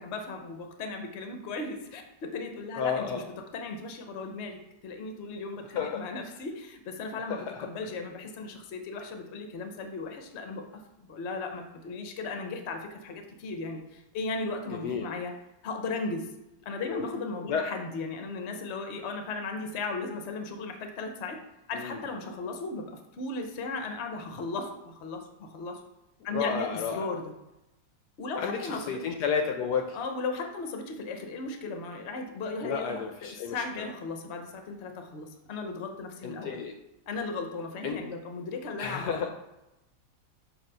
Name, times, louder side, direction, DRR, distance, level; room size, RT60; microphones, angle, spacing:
voice 1, 0.0-3.2 3.5-4.6 4.8-10.6 11.0-15.3 15.6-16.3 16.6-21.4 21.7-25.8 26.2-27.3 28.2-29.0 29.9-36.6 37.1-39.1, left 3 dB, 50° left, 4 dB, 0.9 m, -36 dB
voice 2, 2.8-3.2 5.8-6.0 7.3-7.6 14.7-15.1 16.9-17.1 17.5-17.6 21.7-22.0 26.3-27.1 28.4-30.0 32.6-33.9 36.2-36.7 37.8-38.0 38.8-39.3, left 6 dB, 70° left, 4 dB, 1.1 m, -31 dB
7.2 x 2.8 x 5.4 m, 0.94 s
omnidirectional pair, 2.0 m